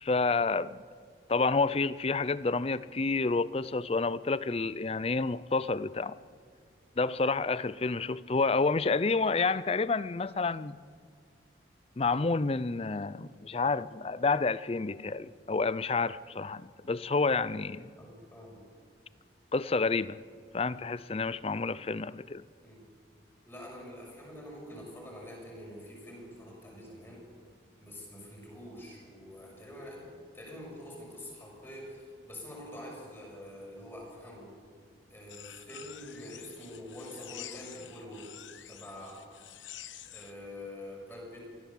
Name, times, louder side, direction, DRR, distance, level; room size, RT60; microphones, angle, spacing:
voice 1, 0.0-0.8 1.3-6.2 7.0-10.8 12.0-17.9 19.5-20.2 20.5-22.4, left 4 dB, 30° left, 0.5 m, -29 dB
voice 2, 18.0-18.6 21.6-21.8 22.6-22.8 23.5-27.2 27.8-34.5 35.1-38.3 38.7-39.2 40.1-41.5, left 1 dB, 15° left, 6.6 m, -46 dB
sound 1, 35.3-40.3, left 11 dB, 90° left, 0.9 m, -48 dB
24.0 x 16.0 x 7.3 m
head